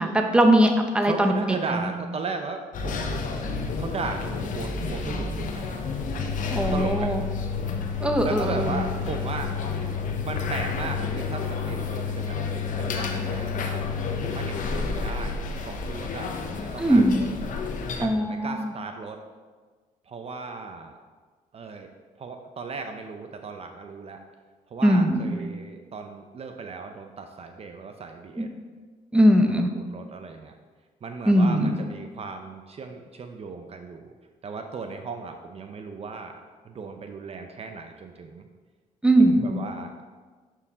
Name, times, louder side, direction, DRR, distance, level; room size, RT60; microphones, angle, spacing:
voice 1, 0.0-1.4 1.7-1.9 6.5-7.2 8.0-8.8 16.8-17.2 18.0-18.7 24.8-25.4 28.4-28.5 29.1-29.7 31.3-31.8 39.0-39.6, right 1 dB, 5° right, 4 dB, 0.8 m, -20 dB
voice 2, 1.0-3.3 3.8-5.7 6.7-7.2 8.2-9.5 10.2-13.8 14.2-15.4 15.6-17.3 18.0-19.2 20.1-21.0 21.5-21.9 22.2-24.2 24.7-28.5 29.5-30.5 31.0-34.1 34.4-36.3 36.6-38.4 39.2-39.9, right 4 dB, 45° right, 5 dB, 0.6 m, -36 dB
sound 1, 2.7-18.1, left 5 dB, 65° left, 0.8 m, -30 dB
7.1 x 4.6 x 3.6 m, 1.4 s
cardioid pair, 75°, 15 cm